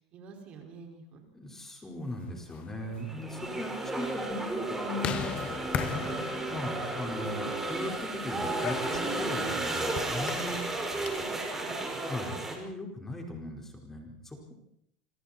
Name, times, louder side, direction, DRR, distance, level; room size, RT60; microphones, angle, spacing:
voice 1, 0.0-1.3 3.5-4.0 11.2-12.1, right 3 dB, 45° right, 3 dB, 5.4 m, -49 dB
voice 2, 1.3-5.6 5.9-10.6 12.1-14.5, left 1 dB, 10° left, 1 dB, 5.0 m, -38 dB
sound 1, 2.3-11.4, left 8 dB, 40° left, 1.8 m, -40 dB
sound 2, 3.0-12.6, right 2 dB, 10° right, 5.3 m, -33 dB
27.0 x 25.5 x 4.5 m, 0.73 s
supercardioid pair, 120°, 3 cm